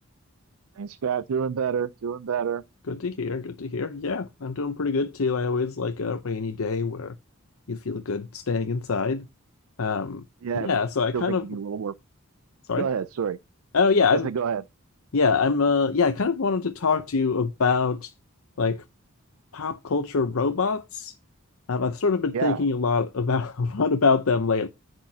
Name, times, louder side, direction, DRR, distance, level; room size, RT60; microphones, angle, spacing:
voice 1, 0.8-2.6 10.4-10.7 11.1-11.9 12.8-13.4 14.1-14.6 22.3-22.6, right 7 dB, 80° right, 0.4 m, -28 dB
voice 2, 2.9-7.2 7.7-9.3 9.8-10.2 10.6-11.5 12.7-12.9 13.7-14.3 15.1-18.1 18.6-18.8 19.5-21.2 21.7-24.7, left 4 dB, 80° left, 0.7 m, -25 dB
10.5 x 7.9 x 2.8 m
head